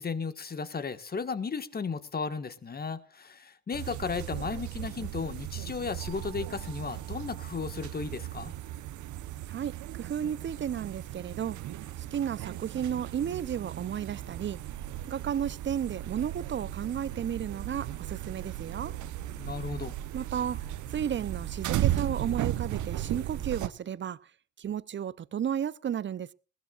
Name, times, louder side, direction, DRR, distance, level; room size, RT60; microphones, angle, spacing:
voice 1, 0.0-8.5 19.4-20.0, left 5 dB, 30° left, 1.8 m, -35 dB
sound 1, 3.7-23.7, right 13 dB, 60° right, 1.1 m, -36 dB
voice 2, 9.5-11.6 12.0-14.6 15.1-18.9 20.1-20.6 20.9-24.2 24.6-26.3, right 9 dB, 35° right, 0.8 m, -33 dB
21.0 x 16.0 x 2.5 m
supercardioid pair, 75°, 33 cm